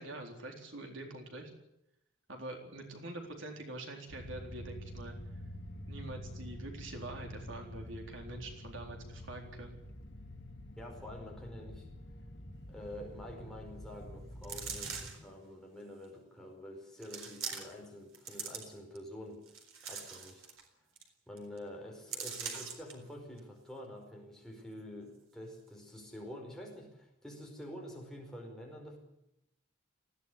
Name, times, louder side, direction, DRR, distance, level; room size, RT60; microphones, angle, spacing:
voice 1, 0.0-1.5 2.3-5.2 5.9-9.8, right 2 dB, 70° right, 3 dB, 4.0 m, -45 dB
sound 1, 4.1-15.1, left 1 dB, 60° left, 3.5 m, -47 dB
voice 2, 10.8-11.9 12.7-19.4 19.8-20.4 21.3-29.0, left 1 dB, ahead, 0 dB, 5.0 m, -47 dB
sound 2, 14.4-15.3 16.0-16.1 17.0-17.9 18.1-19.0 19.5-20.6 21.0-21.1 21.4-21.6 22.1-22.9 23.4-23.5, right 6 dB, 90° right, 4.2 m, -42 dB
20.0 x 16.0 x 9.6 m, 0.83 s
head